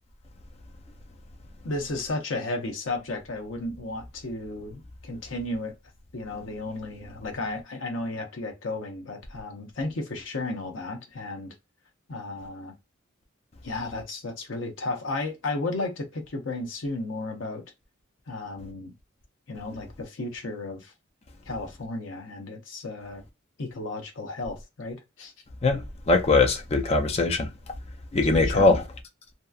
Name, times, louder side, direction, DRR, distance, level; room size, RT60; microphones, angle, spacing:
voice 1, 1.6-5.7 6.1-11.5 12.1-12.7 13.6-17.6 18.3-18.9 19.5-20.9 21.5-23.2 23.6-25.3 28.1-28.8, left 2 dB, 70° left, 0.7 m, -33 dB
voice 2, 26.1-27.5 28.1-28.8, left 3 dB, 30° left, 0.4 m, -21 dB
2.8 x 2.3 x 2.3 m
head